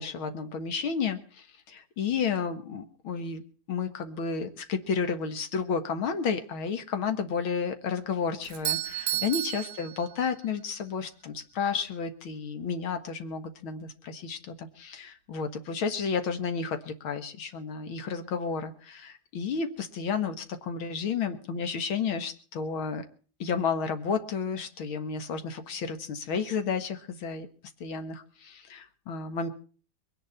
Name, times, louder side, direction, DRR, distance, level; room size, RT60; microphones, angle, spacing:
voice 1, 0.0-3.4 3.7-23.1 23.4-27.5 27.8-29.5, left 5 dB, 75° left, 8 dB, 2.3 m, -32 dB
Doorbell, 8.4-10.6, right 14 dB, 60° right, 1.3 m, -32 dB
22.0 x 10.0 x 5.6 m, 0.42 s
omnidirectional pair, 2.3 m